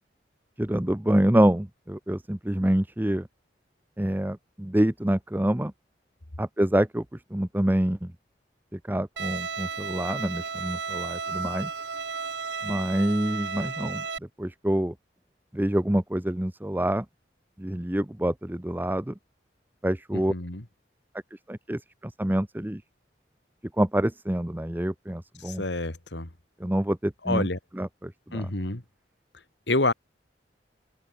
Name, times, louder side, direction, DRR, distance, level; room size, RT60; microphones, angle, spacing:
voice 1, 0.6-3.3 4.0-5.7 6.4-7.0 7.3-8.1 8.7-11.7 12.6-14.1 14.4-14.9 15.5-17.1 17.6-19.1 19.8-20.3 21.3-22.8 23.8-25.6 26.6-27.5 27.7-28.5, right 1 dB, 10° right, 0.7 m, -26 dB
Bowed string instrument, 9.2-14.2, right 5 dB, 75° right, 2.0 m, -33 dB
voice 2, 20.1-20.6 25.4-26.3 27.2-27.6 28.3-28.8 29.7-29.9, left 2 dB, 80° left, 2.6 m, -28 dB
open air
head